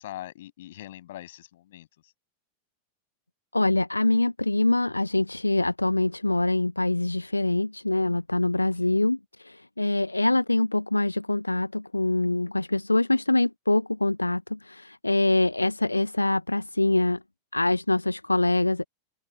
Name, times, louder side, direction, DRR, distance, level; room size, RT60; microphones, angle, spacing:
voice 1, 0.0-2.1, left 14 dB, 55° left, 7.7 m, -42 dB
voice 2, 3.5-17.2 17.5-18.9, left 2 dB, 85° left, 0.7 m, -24 dB
figure-of-eight pair, 90°, 0 cm